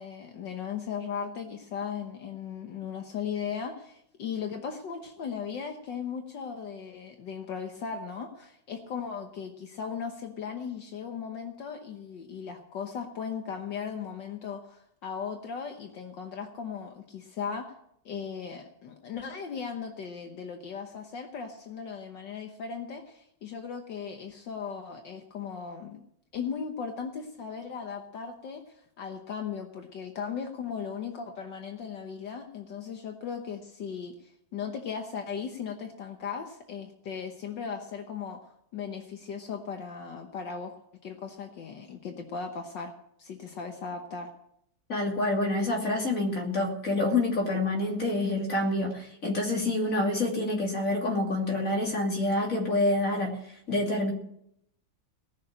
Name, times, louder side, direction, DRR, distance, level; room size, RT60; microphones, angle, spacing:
voice 1, 0.0-17.7 18.1-26.0 26.3-38.4 38.7-40.7 41.0-42.9 43.2-44.3, left 6 dB, 70° left, 4 dB, 1.8 m, -37 dB
voice 2, 44.9-53.4 53.7-54.1, left 2 dB, 45° left, 0 dB, 3.1 m, -27 dB
18.5 x 6.6 x 8.8 m, 0.75 s
omnidirectional pair, 2.1 m